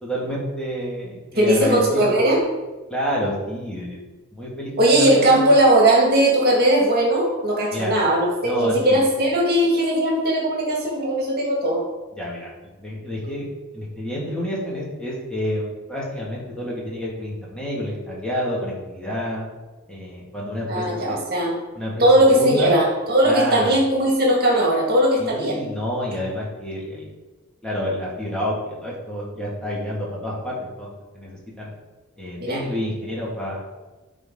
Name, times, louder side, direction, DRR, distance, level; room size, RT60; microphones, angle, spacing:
voice 1, 0.0-2.1 2.9-4.0 4.3-5.4 7.7-7.9 8.4-9.0 12.2-12.5 12.8-13.5 13.7-19.4 19.9-21.2 21.7-22.1 22.4-22.8 23.2-23.8 25.2-27.1 27.6-31.7 32.2-33.6, equal, 5° left, -6 dB, 2.0 m, -28 dB
voice 2, 1.4-2.4 4.8-11.8 20.7-21.5 22.0-25.6 32.4-32.6, right 1 dB, 50° right, -2 dB, 1.9 m, -18 dB
12.5 x 4.2 x 3.8 m, 1.2 s
head